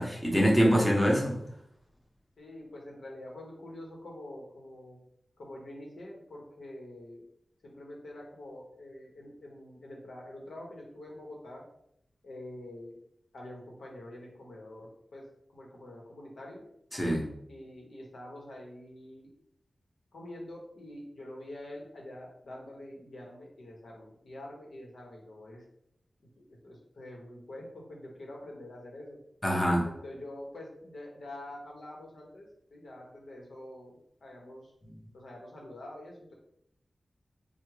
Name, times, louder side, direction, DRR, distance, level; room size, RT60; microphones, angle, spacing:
voice 1, 0.0-1.4 16.9-17.3 29.4-29.9 34.8-35.0, equal, 10° left, -2 dB, 0.8 m, -25 dB
voice 2, 2.4-5.0 5.4-7.3 7.6-11.6 12.2-13.0 13.3-15.3 15.5-16.6 17.5-19.3 20.1-25.6 26.4-29.2 29.8-34.7 35.1-36.3, left 1 dB, 90° left, -1 dB, 1.0 m, -46 dB
4.7 x 2.2 x 3.2 m, 0.75 s
wide cardioid pair, 115°, 0 cm